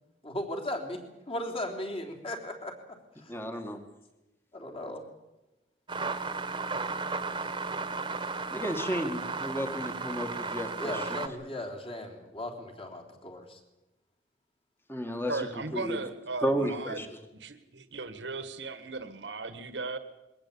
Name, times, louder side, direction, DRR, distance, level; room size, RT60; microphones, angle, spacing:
voice 1, 0.2-1.0 1.3-2.7 3.2-3.3 4.5-5.0 10.8-13.6, left 1 dB, 35° left, 3 dB, 3.6 m, -37 dB
voice 2, 3.3-3.8 8.5-11.2 14.9-16.0 16.4-17.1, equal, 15° left, 5 dB, 1.9 m, -33 dB
sound 1, 5.9-11.3, right 4 dB, 25° right, 1.5 m, -34 dB
voice 3, 15.3-17.0 17.4-20.0, right 3 dB, 80° right, 10 dB, 1.6 m, -37 dB
22.5 x 18.0 x 8.6 m, 0.98 s
head